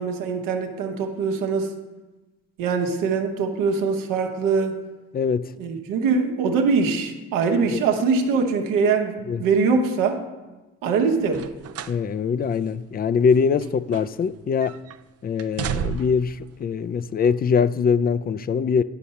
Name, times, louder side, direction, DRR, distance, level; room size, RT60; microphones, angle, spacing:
voice 1, 0.0-1.7 2.6-4.8 5.6-10.2 10.8-11.4, right 5 dB, 80° right, 1.1 m, -22 dB
voice 2, 5.1-5.5 7.7-7.8 9.3-9.4 11.9-14.8 15.2-18.8, left 6 dB, 30° left, 0.4 m, -22 dB
sound 1, 11.3-12.0 12.4-12.6 13.3-14.3 14.6-15.0 15.4-16.3 17.2-17.3, right 9 dB, 50° right, 0.5 m, -32 dB
11.0 x 5.4 x 4.2 m
hypercardioid pair, 55°, 33 cm